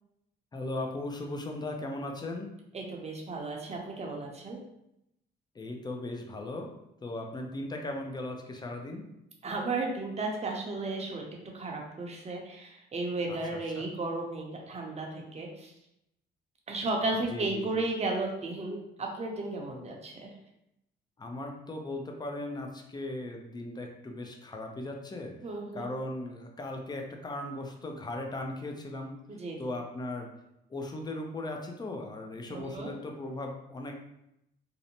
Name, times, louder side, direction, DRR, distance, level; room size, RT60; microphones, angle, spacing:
voice 1, 0.5-2.5 5.5-6.7 7.0-9.1 13.3-13.9 17.3-17.8 21.2-25.4 25.7-29.2 29.6-30.3 30.7-33.9, left 2 dB, 20° left, 2 dB, 0.5 m, -38 dB
voice 2, 2.7-4.6 9.4-11.2 11.5-15.7 16.7-20.3 25.4-25.9 29.3-29.6 32.5-32.9, right 2 dB, 35° right, 0 dB, 0.6 m, -34 dB
2.6 x 2.1 x 2.8 m, 0.83 s
cardioid pair, 90°, 20 cm